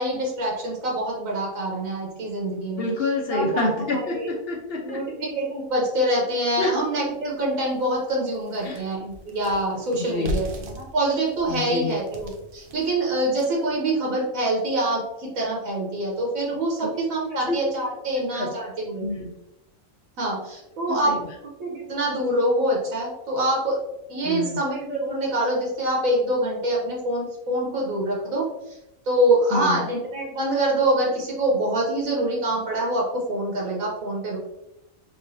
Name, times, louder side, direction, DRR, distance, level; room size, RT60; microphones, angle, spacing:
voice 1, 0.0-2.9 3.3-4.3 4.8-19.3 20.2-21.1 21.6-23.8 24.1-28.8 29.1-34.4, right 1 dB, 85° right, -2 dB, 1.3 m, -25 dB
voice 2, 2.8-5.0 6.6-6.7 8.6-8.8 9.9-10.4 11.5-11.9 17.3-17.6 18.3-19.3 20.9-21.2 24.2-24.6 29.5-29.8, left 2 dB, 55° left, 0 dB, 0.9 m, -28 dB
sound 1, 6.6-6.7 7.2-7.3 7.7-13.7, equal, 50° right, 0.7 m, -37 dB
4.9 x 3.3 x 2.6 m, 0.88 s
omnidirectional pair, 1.4 m